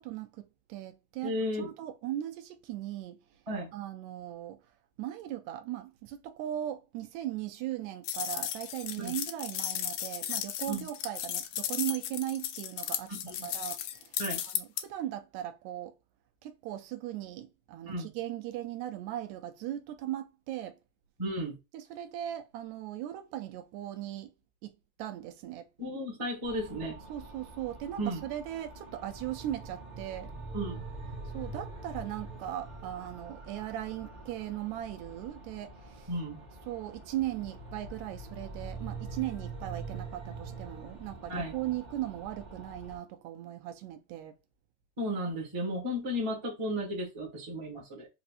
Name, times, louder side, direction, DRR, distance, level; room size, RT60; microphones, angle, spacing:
voice 1, 0.0-3.2 3.7-4.6 5.0-13.1 13.4-14.1 14.5-15.9 16.4-20.8 21.7-24.3 24.6-24.7 25.0-25.7 27.1-30.3 31.3-36.1 36.7-44.3, right 13 dB, 80° right, 1.8 m, -38 dB
voice 2, 1.2-1.7 3.5-3.7 9.0-9.1 10.7-10.9 13.1-13.5 14.2-14.4 17.8-18.1 21.2-21.6 25.8-27.0 28.0-28.2 30.5-30.9 36.1-36.4 41.3-41.6 45.0-48.1, equal, 20° right, 0.9 m, -34 dB
sound 1, 8.0-14.8, left 11 dB, 85° left, 2.0 m, -35 dB
sound 2, 26.4-43.0, right 3 dB, 50° right, 0.4 m, -44 dB
4.9 x 2.8 x 2.4 m
omnidirectional pair, 3.3 m